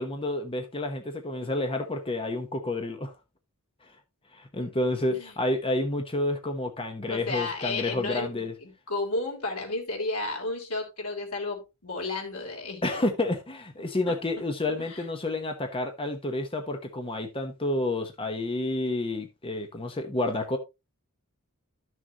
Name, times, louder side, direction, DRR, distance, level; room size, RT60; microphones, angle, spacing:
voice 1, 0.0-3.1 4.3-8.5 12.8-20.6, left 2 dB, 25° left, 0.9 m, -30 dB
voice 2, 7.0-12.8 14.1-14.2 14.8-15.1, left 3 dB, 90° left, 3.5 m, -33 dB
12.0 x 6.4 x 2.9 m
head